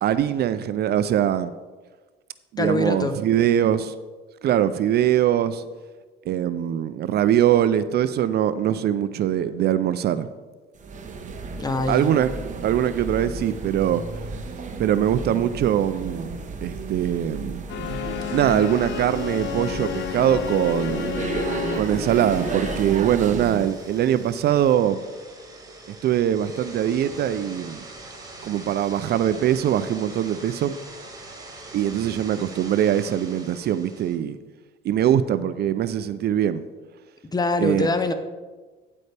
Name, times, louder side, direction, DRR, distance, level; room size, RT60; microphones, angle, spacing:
voice 1, 0.0-1.5 2.5-3.9 4.4-5.6 6.3-10.3 11.9-12.3 12.6-14.3 14.8-16.3 16.6-17.6 18.3-21.1 21.8-25.0 25.9-27.8 28.4-30.8 31.7-34.4 34.8-36.6 37.6-37.9, right 10 dB, 55° right, 13 dB, 0.4 m, -22 dB
voice 2, 2.6-3.2 11.6-12.1 37.3-38.1, left 2 dB, 20° left, 9 dB, 0.7 m, -23 dB
sound 1, 10.8-23.7, right 4 dB, 40° right, 1.0 m, -33 dB
sound 2, 17.6-34.2, right 2 dB, 20° right, 1.5 m, -43 dB
sound 3, 17.7-23.1, left 11 dB, 60° left, 0.5 m, -32 dB
9.6 x 8.5 x 3.4 m, 1.3 s
cardioid pair, 110°, 20 cm